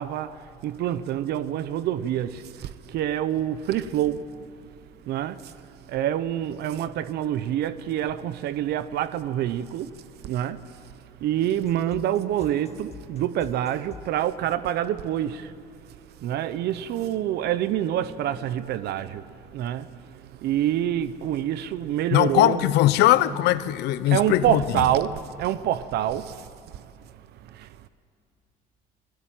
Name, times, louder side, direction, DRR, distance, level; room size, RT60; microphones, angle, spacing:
voice 1, 0.0-4.2 5.1-5.5 5.9-10.6 11.2-15.5 16.2-22.7 24.0-26.8 27.4-27.9, right 11 dB, 75° right, 0.9 m, -27 dB
sound 1, 11.7-14.2, left 6 dB, 40° left, 2.0 m, -45 dB
voice 2, 22.1-24.6, left 14 dB, 85° left, 0.9 m, -20 dB
30.0 x 20.5 x 9.1 m
cardioid pair, 110°, 17 cm